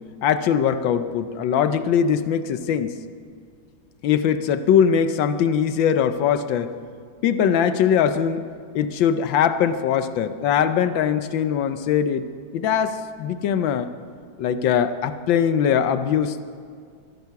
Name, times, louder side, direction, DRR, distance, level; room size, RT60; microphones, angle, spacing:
voice 1, 0.2-2.9 4.0-6.7 7.2-8.4 8.7-12.3 12.5-13.9 14.4-16.4, left 8 dB, 70° left, 11 dB, 1.3 m, -21 dB
24.0 x 9.5 x 5.8 m, 2.2 s
omnidirectional pair, 2.3 m